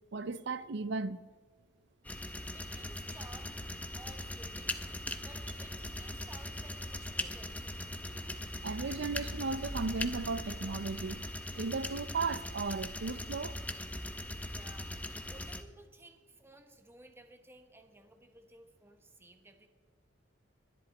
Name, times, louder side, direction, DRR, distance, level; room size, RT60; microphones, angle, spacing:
voice 1, 0.1-1.2 8.3-11.2 11.5-13.6, right 4 dB, 65° right, 0.6 m, -36 dB
sound 1, 2.0-15.6, left 1 dB, 10° left, 0.7 m, -40 dB
voice 2, 2.5-3.6 3.9-7.8 14.5-14.9 15.3-19.7, right 1 dB, 15° right, 1.1 m, -56 dB
21.0 x 11.0 x 4.2 m
head